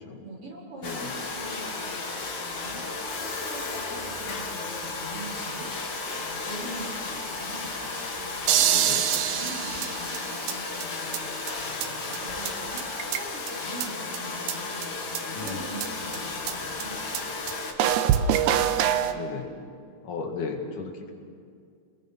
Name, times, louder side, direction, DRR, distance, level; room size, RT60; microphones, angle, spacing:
voice 1, 0.2-2.0 2.4-2.8 3.2-5.7 6.1-7.7 8.2-11.1 11.5-17.1 18.6-19.1, right 1 dB, 45° right, -4 dB, 5.3 m, -42 dB
Domestic sounds home sounds, 0.8-17.7, left 3 dB, 40° left, 2.0 m, -34 dB
sound 1, 8.5-10.5 10.8-10.9 11.1-11.2 11.5-11.6 11.8-11.9 12.1-12.2 12.5-12.6 12.8-13.5 13.8-13.9 14.1-14.2 14.5-14.6 14.8-14.9 15.2-15.3 15.5-15.6 15.8-15.9 16.1-16.2 16.5-16.6 16.8-16.9 17.1-17.2 17.5-17.6 17.8-19.1, right 10 dB, 80° right, 2.3 m, -24 dB
voice 2, 8.7-9.1 15.3-15.6 17.8-18.3 19.1-19.5 20.0-21.1, left 5 dB, 75° left, 2 dB, 3.5 m, -35 dB
29.5 x 21.0 x 6.0 m, 2.3 s
omnidirectional pair, 3.6 m